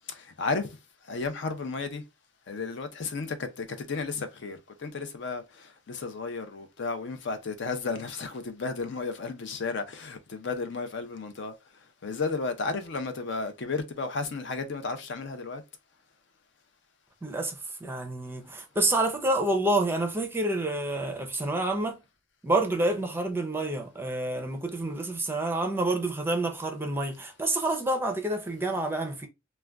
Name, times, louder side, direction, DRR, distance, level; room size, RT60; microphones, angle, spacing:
voice 1, 0.1-0.8 1.1-2.0 2.5-11.5 12.0-15.6, left 4 dB, 65° left, 0.5 m, -33 dB
voice 2, 17.2-22.0 22.4-29.3, right 2 dB, 10° right, 0.5 m, -28 dB
2.4 x 2.2 x 3.3 m
head